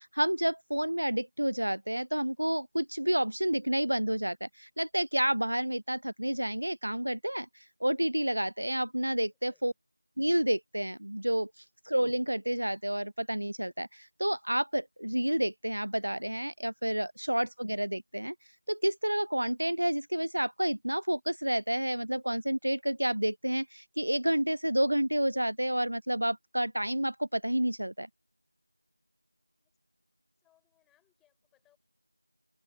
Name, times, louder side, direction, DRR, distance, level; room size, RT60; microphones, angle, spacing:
voice 1, 0.0-7.5 7.8-9.7 10.2-11.5 11.9-18.3 18.7-28.1, right 1 dB, 60° right, 0.3 m, -30 dB
voice 2, 9.2-9.8 11.5-11.7 17.2-17.3 29.6-29.8 30.4-31.8, left 13 dB, ahead, 5.6 m, -72 dB
figure-of-eight pair, 175°, 0 cm